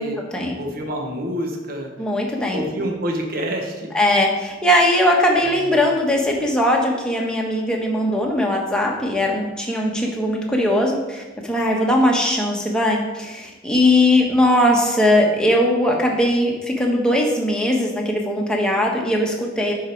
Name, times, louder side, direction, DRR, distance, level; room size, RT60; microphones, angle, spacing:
voice 1, 0.6-1.9 2.5-3.9 5.4-5.9, equal, 50° right, 1 dB, 1.2 m, -27 dB
voice 2, 2.0-2.6 3.9-19.7, left 1 dB, 5° left, -1 dB, 1.3 m, -19 dB
10.5 x 4.9 x 4.6 m, 1.2 s
head